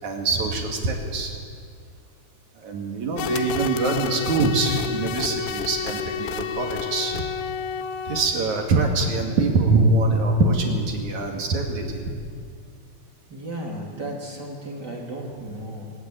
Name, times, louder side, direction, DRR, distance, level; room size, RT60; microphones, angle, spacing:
voice 1, 0.0-1.4 2.6-7.2 8.1-12.0, right 3 dB, 50° right, 2 dB, 3.1 m, -23 dB
sound 1, 3.2-8.6, left 6 dB, 85° left, 3.3 m, -30 dB
voice 2, 13.3-15.9, right 1 dB, 25° right, -1 dB, 2.8 m, -34 dB
20.5 x 20.0 x 9.1 m, 2.2 s
omnidirectional pair, 5.2 m